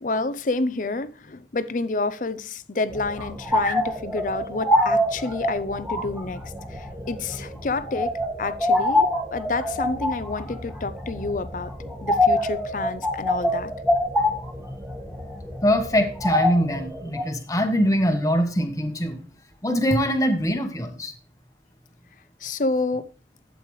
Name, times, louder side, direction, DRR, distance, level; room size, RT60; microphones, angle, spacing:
voice 1, 0.0-6.4 6.7-13.7 22.4-23.1, left 3 dB, 45° left, 0.5 m, -29 dB
sound 1, 2.9-17.2, left 1 dB, 5° right, 1.6 m, -26 dB
voice 2, 15.6-19.2 19.6-21.1, equal, 20° left, 1.1 m, -23 dB
11.5 x 8.4 x 3.2 m
head